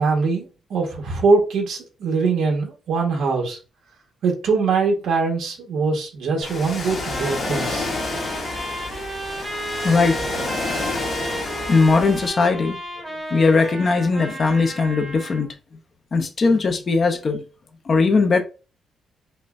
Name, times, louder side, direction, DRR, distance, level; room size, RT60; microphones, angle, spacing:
voice 1, 0.0-3.6 4.2-7.9, right 4 dB, 70° right, 1.2 m, -22 dB
Ocean, 6.4-12.3, left 3 dB, 45° left, 1.2 m, -29 dB
Trumpet, 6.8-15.5, right 1 dB, 15° right, 1.2 m, -33 dB
voice 2, 9.8-10.2 11.7-12.8 13.3-15.5 16.1-17.4 17.9-18.4, left 4 dB, 30° left, 0.5 m, -19 dB
5.3 x 2.2 x 2.5 m
cardioid pair, 180°, 0 cm